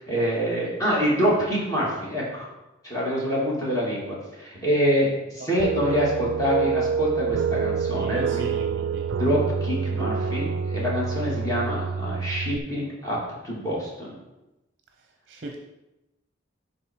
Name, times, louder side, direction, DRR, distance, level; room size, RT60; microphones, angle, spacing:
voice 1, 0.0-2.5 2.8-8.4 9.2-13.2 13.4-14.1, equal, 15° left, -6 dB, 2.6 m, -26 dB
sound 1, 5.6-12.6, right 6 dB, 85° right, 0.4 m, -27 dB
voice 2, 8.0-9.1 15.3-15.6, right 2 dB, 50° right, 3 dB, 0.7 m, -34 dB
11.0 x 4.0 x 4.6 m, 0.96 s
head